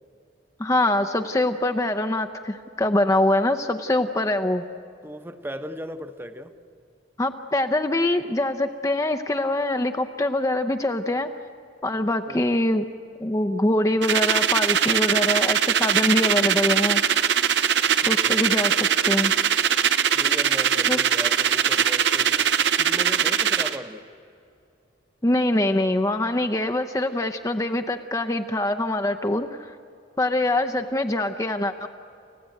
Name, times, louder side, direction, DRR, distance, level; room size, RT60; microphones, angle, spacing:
voice 1, 0.6-4.6 7.2-11.3 11.8-12.9 13.2-17.0 18.1-18.7 19.0-19.3 20.9-21.0 25.2-29.8 30.2-31.9, left 1 dB, 15° left, 7 dB, 0.6 m, -24 dB
voice 2, 5.0-6.5 12.3-12.4 17.9-18.4 20.1-24.1, equal, 10° right, 9 dB, 0.9 m, -37 dB
sound 1, 14.0-23.8, right 8 dB, 70° right, 0.8 m, -21 dB
29.0 x 14.5 x 9.0 m, 2.5 s
head